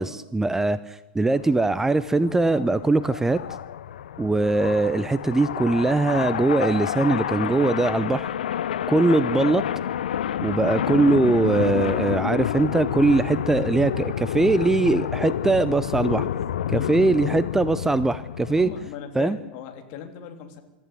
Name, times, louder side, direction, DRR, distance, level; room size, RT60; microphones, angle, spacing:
voice 1, 0.0-3.4 4.2-8.3 8.9-9.6 10.4-16.3 16.7-18.7 19.2-19.4, right 3 dB, 10° right, 15 dB, 0.7 m, -21 dB
sound 1, 1.4-18.9, left 9 dB, 65° left, 0.9 m, -29 dB
voice 2, 18.5-20.6, left 8 dB, 45° left, 5 dB, 3.4 m, -38 dB
25.5 x 14.0 x 8.4 m, 1.1 s
figure-of-eight pair, 90°, 5 cm